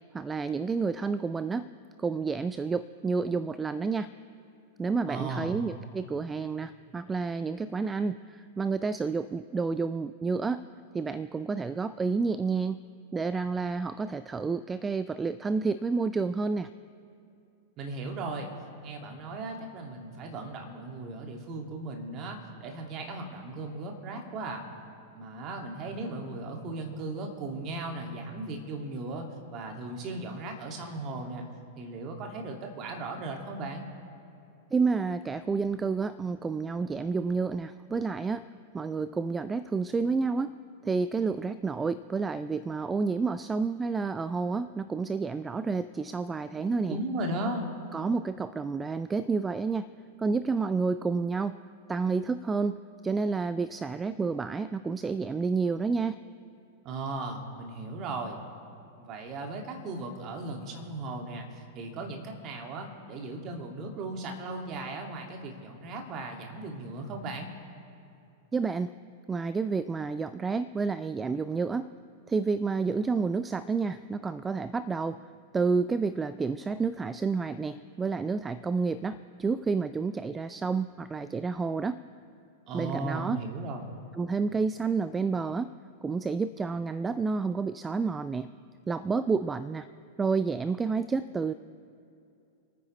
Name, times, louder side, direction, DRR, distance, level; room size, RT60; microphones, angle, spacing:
voice 1, 0.1-1.7 2.0-4.1 4.8-10.6 10.9-12.8 13.1-16.7 34.7-38.5 38.7-40.5 40.8-47.0 47.9-49.9 50.2-51.6 51.9-56.2 68.5-68.9 69.3-71.9 72.3-75.2 75.5-82.0 82.7-83.4 84.1-85.7 86.0-88.5 88.9-89.9 90.2-91.5, right 4 dB, 15° right, 15 dB, 0.3 m, -30 dB
voice 2, 5.1-5.6 17.8-18.5 18.8-24.6 25.1-29.3 29.5-31.5 31.8-33.9 46.9-47.6 56.8-58.4 58.9-67.5 82.7-83.9, right 2 dB, 35° right, 2 dB, 2.2 m, -37 dB
28.5 x 9.6 x 3.2 m, 2.7 s
figure-of-eight pair, 95°, 0 cm